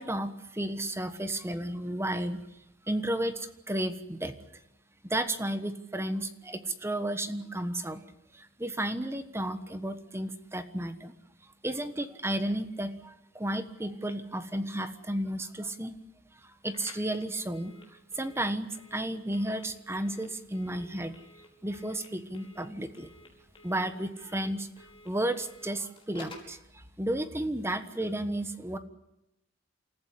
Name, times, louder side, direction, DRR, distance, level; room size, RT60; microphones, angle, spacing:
voice 1, 0.0-2.4 2.8-4.3 5.0-8.1 8.3-11.1 11.6-16.0 16.4-17.7 18.2-21.1 21.6-23.1 23.6-24.7 25.0-28.8, right 1 dB, 10° right, 11 dB, 1.3 m, -33 dB
Telephone, 16.7-26.6, left 2 dB, 25° left, 5.1 m, -54 dB
28.5 x 14.5 x 9.9 m, 0.87 s
head